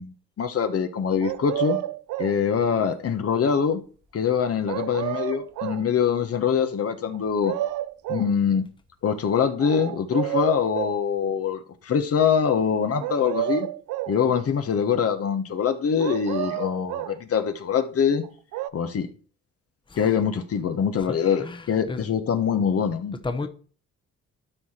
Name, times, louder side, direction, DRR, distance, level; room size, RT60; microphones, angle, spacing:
voice 1, 0.0-1.8 2.2-3.8 4.1-7.5 8.1-8.7 9.0-13.7 14.1-18.2 18.7-19.1 20.0-23.5, left 7 dB, 50° left, 1.2 m, -24 dB
sound 1, 1.2-2.4 4.7-5.9 7.1-8.3 9.6-11.0 13.0-14.2 16.0-17.2 18.2-18.7, right 15 dB, 90° right, 0.5 m, -30 dB
voice 2, 21.4-22.0 23.2-23.5, left 3 dB, 15° left, 1.0 m, -32 dB
12.5 x 4.9 x 4.4 m
cardioid pair, 90°, 30 cm